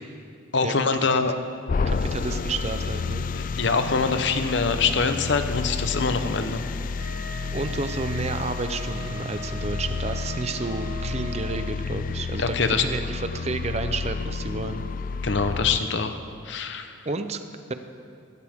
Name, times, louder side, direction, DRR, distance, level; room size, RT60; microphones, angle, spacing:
voice 1, 0.5-1.3 3.3-6.6 12.4-12.8 15.2-16.2 16.4-16.9, left 4 dB, 60° left, 8 dB, 0.8 m, -24 dB
sound 1, 1.7-15.8, left 4 dB, 40° left, 0.3 m, -30 dB
voice 2, 1.8-3.3 7.5-14.8 17.1-17.4, right 3 dB, 30° right, 9 dB, 0.6 m, -31 dB
Wind instrument woodwind instrument, 7.0-11.8, right 4 dB, 70° right, 0.9 m, -41 dB
15.5 x 15.5 x 3.6 m, 2.3 s
head